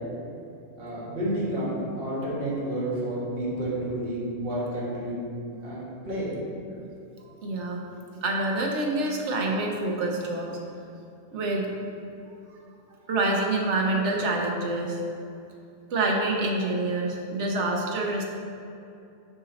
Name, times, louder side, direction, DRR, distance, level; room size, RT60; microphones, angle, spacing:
voice 1, 0.8-5.2 5.6-6.3 8.0-8.1, right 1 dB, 40° right, -8 dB, 1.9 m, -30 dB
voice 2, 7.3-7.8 8.2-10.5 11.3-11.7 13.1-15.0 15.9-18.2, right 2 dB, 55° right, 0 dB, 1.1 m, -26 dB
6.8 x 5.4 x 4.0 m, 2.6 s
omnidirectional pair, 1.5 m